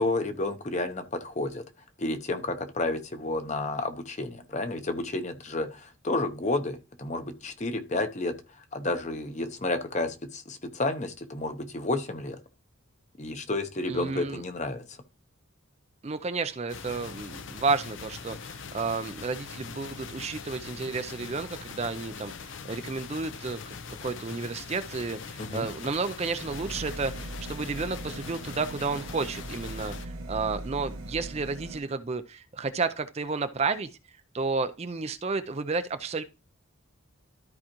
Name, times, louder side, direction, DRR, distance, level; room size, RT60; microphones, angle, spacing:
voice 1, 0.0-1.6 2.0-8.3 8.7-12.4 13.2-15.0 25.4-25.7, left 2 dB, 35° left, 0.8 m, -31 dB
voice 2, 13.9-14.4 16.0-33.9 34.3-36.2, right 4 dB, 30° right, 0.4 m, -32 dB
sound 1, 16.7-30.1, left 5 dB, 60° left, 0.6 m, -42 dB
sound 2, 26.5-31.8, right 1 dB, 80° right, 1.3 m, -40 dB
13.0 x 4.8 x 2.9 m
head